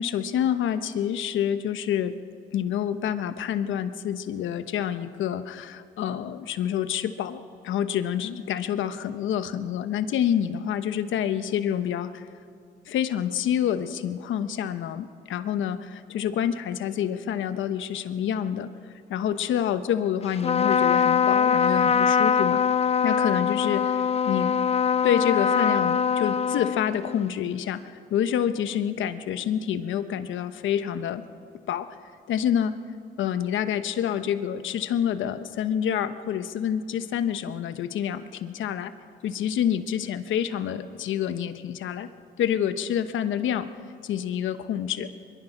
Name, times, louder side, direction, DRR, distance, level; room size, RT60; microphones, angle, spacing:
voice 1, 0.0-2.1 2.5-12.2 12.9-18.7 19.1-22.6 23.0-24.6 25.0-27.8 28.1-31.2 31.7-31.9 32.3-32.8 33.2-38.9 39.2-42.1 42.4-43.7 44.0-45.1, left 9 dB, 75° left, 11 dB, 1.0 m, -27 dB
Trumpet, 20.4-27.2, left 7 dB, 30° left, 0.5 m, -23 dB
23.0 x 22.0 x 6.0 m, 2.3 s
cardioid pair, 90°, 20 cm